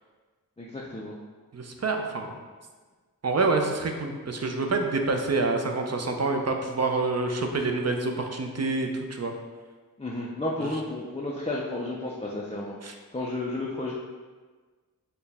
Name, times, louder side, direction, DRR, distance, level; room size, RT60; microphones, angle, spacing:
voice 1, 0.6-1.2 10.0-12.7 13.1-13.9, left 2 dB, 20° left, -4 dB, 0.3 m, -32 dB
voice 2, 1.5-2.4 3.2-9.3 10.6-10.7 12.8-12.9, right 3 dB, 45° right, 4 dB, 0.4 m, -27 dB
4.4 x 2.2 x 3.4 m, 1.4 s
wide cardioid pair, 45°, 37 cm